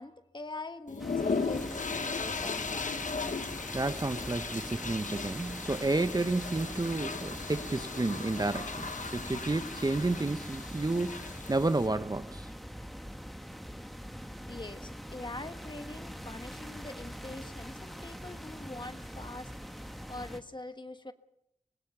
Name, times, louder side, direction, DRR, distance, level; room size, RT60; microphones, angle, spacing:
voice 1, 0.0-2.9 14.5-19.5 20.1-21.1, left 2 dB, 35° left, 1.4 m, -44 dB
sound 1, 0.9-11.9, left 4 dB, 75° left, 1.1 m, -37 dB
sound 2, 1.0-20.4, equal, ahead, 1.7 m, -43 dB
voice 2, 3.7-12.5, right 2 dB, 30° right, 0.7 m, -31 dB
25.5 x 18.5 x 5.9 m
wide cardioid pair, 50°, 13 cm